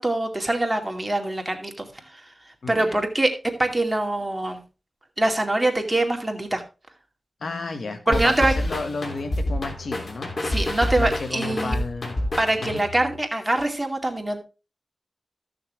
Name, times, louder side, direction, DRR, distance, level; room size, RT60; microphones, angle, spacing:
voice 1, 0.0-1.9 2.7-3.3 3.6-4.6 5.2-6.6 8.1-8.5 10.4-11.8 12.4-14.4, right 2 dB, 20° right, 4 dB, 2.4 m, -23 dB
voice 2, 2.6-3.0 7.4-10.3 10.9-12.2 12.6-12.8, left 3 dB, 80° left, 7 dB, 1.4 m, -32 dB
sound 1, 8.1-13.1, left 1 dB, 60° left, 3.0 m, -28 dB
14.0 x 6.6 x 3.4 m, 0.30 s
cardioid pair, 50°, 0 cm